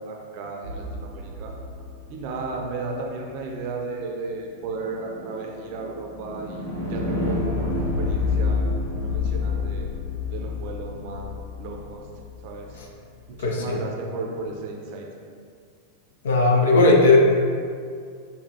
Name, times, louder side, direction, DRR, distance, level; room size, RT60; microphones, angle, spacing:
voice 1, 0.0-1.5 2.1-6.6 6.9-8.7 9.0-9.9 10.3-12.1 12.4-12.8 13.4-15.1, right 3 dB, 45° right, 0 dB, 0.6 m, -34 dB
sound 1, 0.6-2.8 4.6-12.7, left 3 dB, 85° left, 1.0 m, -29 dB
voice 2, 13.4-13.8 16.2-17.2, left 3 dB, 60° left, 0 dB, 0.7 m, -17 dB
6.8 x 2.3 x 2.8 m, 2.2 s
figure-of-eight pair, 90°, 0 cm